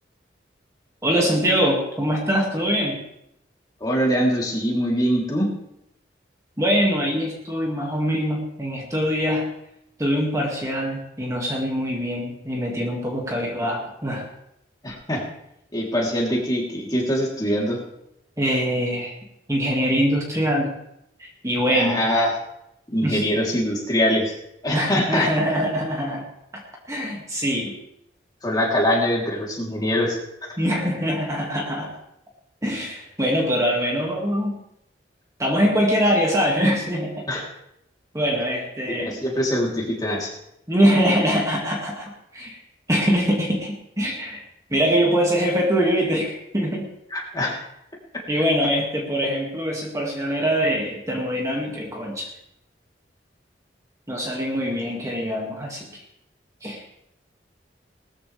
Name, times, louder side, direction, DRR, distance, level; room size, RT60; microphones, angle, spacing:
voice 1, 1.0-3.0 6.6-9.5 10.0-14.3 18.4-19.1 19.5-20.7 21.2-22.1 23.0-23.2 24.7-26.2 26.5-26.6 26.9-27.8 30.6-31.9 32.6-34.6 35.4-37.3 38.1-39.2 40.7-42.6 42.9-44.4 44.7-46.9 48.3-52.3 54.1-56.0 56.6-56.8, equal, 20° right, -1 dB, 2.1 m, -23 dB
voice 2, 3.8-5.5 14.8-15.2 15.7-17.8 21.7-22.4 22.9-24.3 24.6-25.3 28.4-30.2 37.3-37.4 38.8-40.3 47.1-47.6, equal, 20° left, -2 dB, 3.3 m, -23 dB
19.5 x 13.5 x 3.4 m, 0.81 s
head